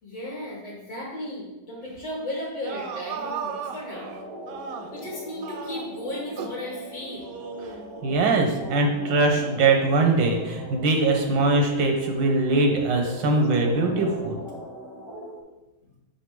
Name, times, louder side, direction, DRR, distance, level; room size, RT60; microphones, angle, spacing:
voice 1, 0.0-4.1 4.9-7.3, left 1 dB, 75° left, -4 dB, 2.6 m, -35 dB
sound 1, 2.5-5.1 5.4-6.7 7.2-8.2, right 6 dB, 70° right, 0.9 m, -36 dB
sound 2, 3.9-15.4, equal, 25° right, 0.5 m, -41 dB
voice 2, 8.0-14.3, right 3 dB, 90° right, 2 dB, 1.7 m, -22 dB
5.7 x 4.9 x 3.6 m, 1.0 s
omnidirectional pair, 1.9 m